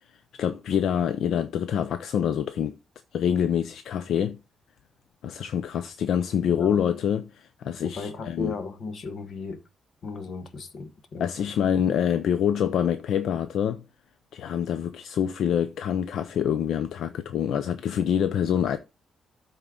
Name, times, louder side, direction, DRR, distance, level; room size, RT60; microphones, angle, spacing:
voice 1, 0.4-2.7 3.1-4.4 5.2-8.5 11.2-13.8 14.3-18.8, left 8 dB, 65° left, 0.6 m, -26 dB
voice 2, 7.8-9.6 10.0-11.5, left 4 dB, 50° left, 1.2 m, -36 dB
13.0 x 4.4 x 3.7 m
cardioid pair, 160°, 0 cm